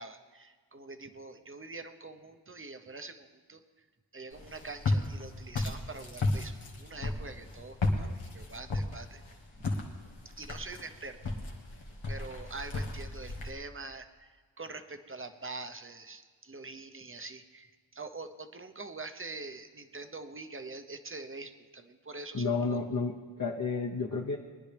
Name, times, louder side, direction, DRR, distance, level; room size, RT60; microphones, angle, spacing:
voice 1, 0.0-3.6 4.1-9.2 9.6-9.7 10.2-11.2 12.1-22.8, right 3 dB, 30° right, 9 dB, 0.9 m, -44 dB
Walk footsteps, 4.3-13.5, left 2 dB, 85° left, 1.5 m, -34 dB
voice 2, 22.3-24.4, left 4 dB, 40° left, -2 dB, 1.1 m, -31 dB
21.0 x 10.5 x 3.4 m, 1.5 s
wide cardioid pair, 60°, 45 cm